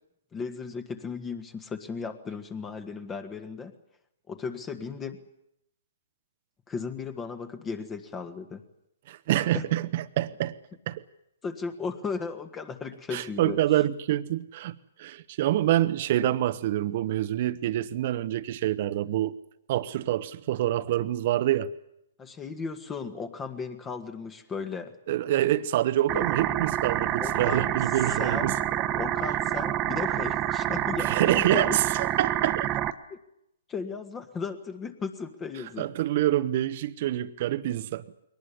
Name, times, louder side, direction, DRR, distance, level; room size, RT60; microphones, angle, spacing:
voice 1, 0.3-3.7 4.3-5.2 6.7-8.6 9.5-9.6 11.4-13.6 22.2-25.0 26.1-26.2 27.2-27.7 28.1-28.5 28.9-31.8 33.1-33.2 33.7-35.9, left 5 dB, 20° left, 1.8 m, -35 dB
voice 2, 9.1-10.5 10.9-11.0 13.1-19.4 19.7-21.7 25.1-28.6 31.0-32.7 35.8-38.0, right 13 dB, 50° right, 1.1 m, -26 dB
sound 1, 26.1-32.9, right 12 dB, 30° right, 1.3 m, -28 dB
22.0 x 19.0 x 10.0 m
figure-of-eight pair, 125°, 0 cm